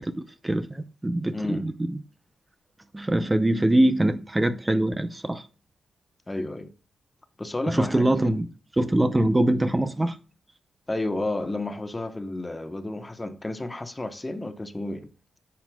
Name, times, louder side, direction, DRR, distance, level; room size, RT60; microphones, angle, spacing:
voice 1, 0.0-2.0 2.9-5.5 7.7-8.5 8.7-10.2, right 1 dB, 15° right, 0.7 m, -23 dB
voice 2, 1.3-1.7 6.3-6.7 7.4-8.1 10.9-15.1, left 2 dB, 20° left, 1.1 m, -31 dB
10.5 x 7.4 x 2.3 m
cardioid pair, 75°, 0 cm